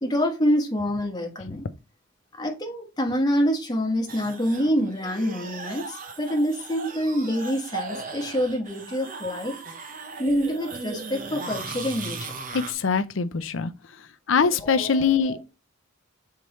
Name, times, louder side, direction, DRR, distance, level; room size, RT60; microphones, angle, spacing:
voice 1, 0.0-1.6 2.4-9.6 10.2-12.3 14.6-15.4, equal, 20° left, 1.3 m, -26 dB
sound 1, 4.1-12.7, right 4 dB, 40° right, 0.8 m, -37 dB
voice 2, 12.5-13.7 14.3-15.4, left 5 dB, 65° left, 0.6 m, -23 dB
7.0 x 4.7 x 3.1 m
head